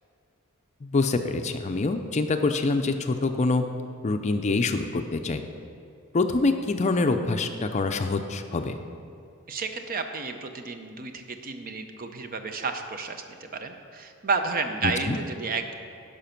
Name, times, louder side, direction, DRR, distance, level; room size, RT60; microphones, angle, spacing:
voice 1, 0.8-3.7 4.0-5.4 6.1-8.8 14.8-15.2, left 3 dB, 35° left, 7 dB, 0.4 m, -25 dB
voice 2, 9.5-15.7, right 4 dB, 40° right, 7 dB, 0.6 m, -31 dB
12.0 x 5.1 x 5.8 m, 2.4 s
head